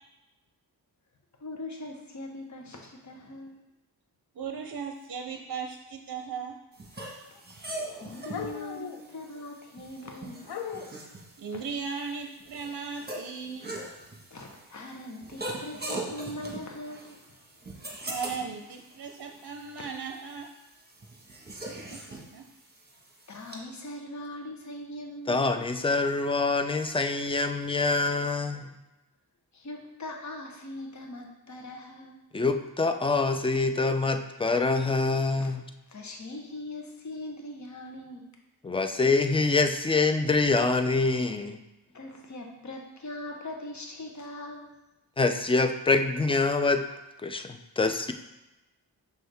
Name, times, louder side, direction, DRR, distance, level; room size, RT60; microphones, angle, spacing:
voice 1, 1.4-3.6 7.3-7.4 7.9-10.4 11.5-11.6 14.3-17.2 21.6-21.8 22.1-22.2 23.3-25.7 29.5-32.2 35.9-38.2 41.9-44.7, left 1 dB, 45° left, 1 dB, 1.0 m, -41 dB
voice 2, 4.3-6.5 11.4-13.8 18.1-20.5 21.7-22.0 22.3-22.5, right 5 dB, 60° right, 3 dB, 0.6 m, -37 dB
sound 1, 6.7-23.6, right 1 dB, 25° right, 1.3 m, -42 dB
sound 2, 7.0-7.4 7.7-9.4 10.4-11.0 15.2-15.5 16.7-16.8 18.9-19.0 19.9-20.1, left 7 dB, 70° left, 0.6 m, -40 dB
voice 3, 25.3-28.7 32.3-35.6 38.6-41.6 45.2-46.9 47.2-48.1, left 3 dB, 15° left, 8 dB, 0.4 m, -25 dB
6.1 x 5.5 x 3.4 m, 0.98 s
wide cardioid pair, 80°, 40 cm